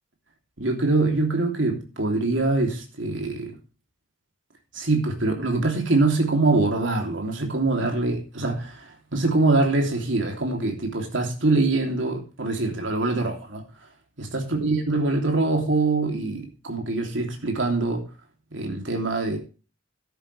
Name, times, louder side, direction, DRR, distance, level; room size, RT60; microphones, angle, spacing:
voice 1, 0.6-3.5 4.7-13.6 14.2-18.0 18.5-19.4, right 3 dB, 70° right, 2 dB, 3.1 m, -24 dB
13.0 x 10.0 x 3.4 m, 0.33 s
head